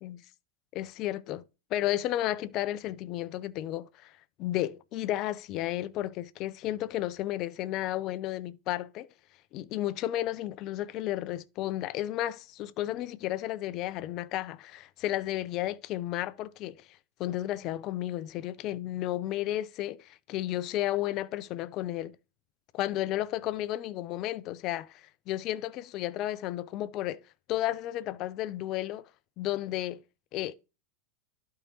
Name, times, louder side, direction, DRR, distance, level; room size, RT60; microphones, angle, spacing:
voice 1, 0.7-1.4 1.7-4.1 4.4-9.1 9.5-22.2 22.7-27.2 27.5-29.0 29.4-30.0 30.3-30.5, left 14 dB, 40° left, 0.5 m, -33 dB
11.5 x 4.7 x 2.9 m
figure-of-eight pair, 90°, 0 cm